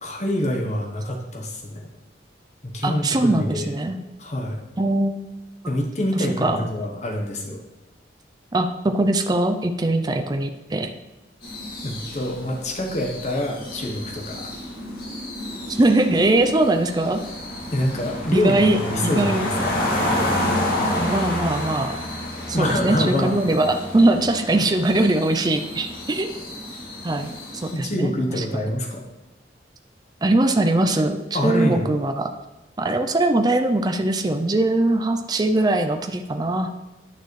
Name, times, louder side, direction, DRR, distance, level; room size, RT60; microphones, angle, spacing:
voice 1, 0.0-1.9 2.6-3.7 4.2-4.6 5.7-7.6 11.8-14.5 17.7-19.9 22.5-23.4 27.7-29.0 31.3-31.9, left 1 dB, 40° left, 0 dB, 1.1 m, -26 dB
voice 2, 2.8-4.0 4.8-5.2 5.6-5.7 6.2-6.7 8.5-10.9 15.7-17.2 18.3-19.5 21.0-22.0 22.5-26.3 27.0-27.3 27.6-28.6 30.2-32.3 32.8-36.7, right 2 dB, 20° right, 6 dB, 0.4 m, -21 dB
sound 1, 11.4-27.7, left 1 dB, 55° left, 2.1 m, -29 dB
9.1 x 6.7 x 3.2 m, 1.1 s
head